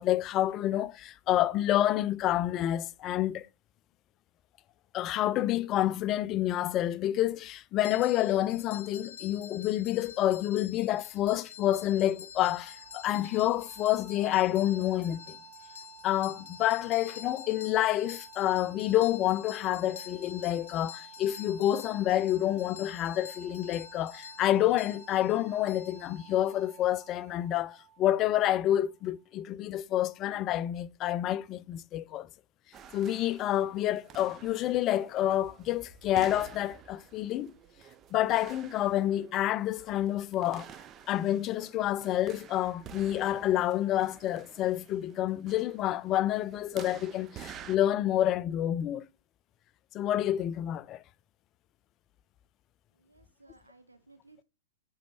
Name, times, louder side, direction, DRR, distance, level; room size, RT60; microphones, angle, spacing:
voice 1, 0.0-3.5 4.9-15.4 16.0-32.3 32.9-37.5 38.1-40.7 41.1-49.1 49.9-51.0, left 13 dB, 30° left, 0.4 m, -28 dB
sound 1, 7.8-26.6, left 8 dB, 60° left, 0.8 m, -48 dB
sound 2, 12.4-29.3, right 9 dB, 50° right, 1.1 m, -54 dB
sound 3, 32.7-47.8, right 9 dB, 25° right, 0.5 m, -50 dB
voice 2, 53.0-54.4, right 3 dB, 80° right, 0.7 m, -59 dB
9.2 x 4.2 x 4.5 m
figure-of-eight pair, 105°, 0 cm